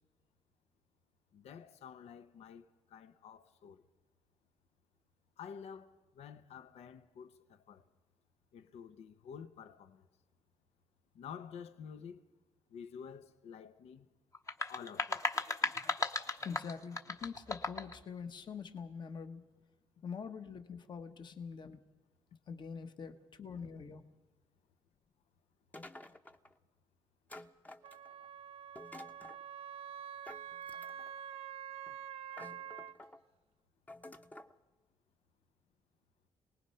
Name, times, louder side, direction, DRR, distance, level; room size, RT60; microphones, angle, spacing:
voice 1, 1.3-3.8 5.4-7.9 8.5-10.1 11.1-12.2 12.7-14.1 14.7-15.2, left 7 dB, 80° left, 0.9 m, -50 dB
sound 1, 14.3-18.0, left 3 dB, 30° left, 1.1 m, -36 dB
voice 2, 16.4-19.4 20.0-21.8 22.5-24.0, left 6 dB, 45° left, 1.3 m, -44 dB
sound 2, 25.7-26.5 27.3-28.3 28.8-29.4 30.3-31.2 31.9-32.0 32.3-33.2 33.9-34.5, left 1 dB, 15° left, 0.9 m, -51 dB
Wind instrument woodwind instrument, 27.8-32.9, right 9 dB, 70° right, 0.7 m, -46 dB
27.0 x 19.5 x 5.7 m
cardioid pair, 115°, 11 cm